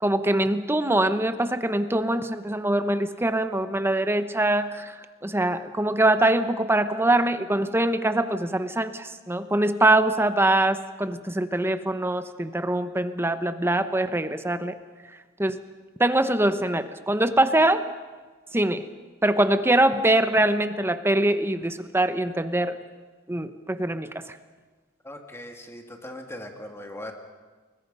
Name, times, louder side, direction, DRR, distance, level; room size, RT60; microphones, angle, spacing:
voice 1, 0.0-4.9 5.2-14.7 15.4-15.6 16.0-17.8 18.5-18.8 19.2-22.8 23.3-24.2, right 1 dB, 10° right, 10 dB, 0.9 m, -23 dB
voice 2, 25.0-27.1, left 1 dB, 10° left, 3 dB, 2.4 m, -39 dB
29.5 x 21.5 x 5.5 m, 1.4 s
head